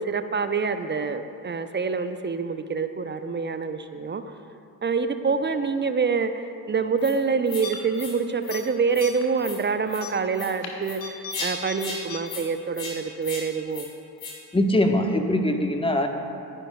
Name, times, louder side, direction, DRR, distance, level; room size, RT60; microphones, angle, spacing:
voice 1, 0.0-4.2 4.8-13.9, right 5 dB, 20° right, 9 dB, 0.7 m, -26 dB
sound 1, 7.0-7.1 7.5-7.7 7.9-8.1 8.4-8.6 8.9-9.1 9.4-9.6 9.9-10.0 10.3-10.5 10.8-11.0 11.3-11.5 11.8-12.0 12.3-12.4 12.7-12.9 13.2-13.4 13.7-13.9 14.2-14.3, left 3 dB, 60° left, 3.2 m, -35 dB
sound 2, 7.6-8.1 8.4-8.6 9.0-9.3 9.9-11.4 11.7-11.8 12.1-12.2, left 5 dB, 85° left, 1.1 m, -37 dB
voice 2, 14.5-16.1, left 1 dB, 10° left, 4 dB, 1.3 m, -22 dB
24.5 x 9.8 x 2.4 m, 2.6 s
figure-of-eight pair, 40°, 49 cm